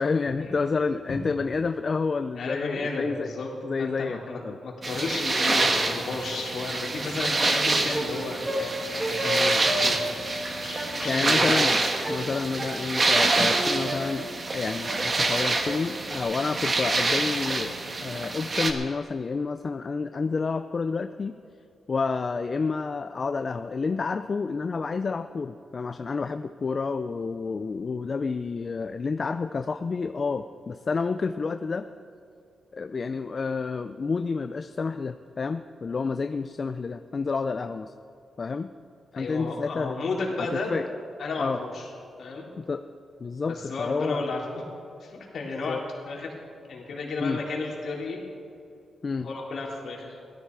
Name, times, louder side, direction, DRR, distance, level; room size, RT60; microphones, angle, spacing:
voice 1, 0.0-3.3 3.6-4.6 9.2-9.7 11.0-11.8 12.1-17.8 18.0-21.3 21.9-31.9 32.7-37.9 38.4-38.7 39.2-40.0 40.4-40.9 41.4-41.6 42.6-42.8 43.2-44.3 45.7-45.8 47.2-47.4 49.0-49.3, left 4 dB, 40° left, 9 dB, 0.4 m, -29 dB
voice 2, 2.4-3.5 3.8-10.2 10.6-11.4 39.1-40.7 41.2-41.9 42.2-42.5 43.5-44.6 45.0-45.8 46.1-46.3 46.7-48.2 49.2-50.2, left 3 dB, 65° left, -2 dB, 3.6 m, -33 dB
sound 1, 4.8-18.7, right 3 dB, 35° right, 1.4 m, -26 dB
sound 2, 7.8-16.2, equal, 20° right, 1.7 m, -33 dB
17.0 x 13.0 x 4.7 m, 2.5 s
cardioid pair, 95°, 0 cm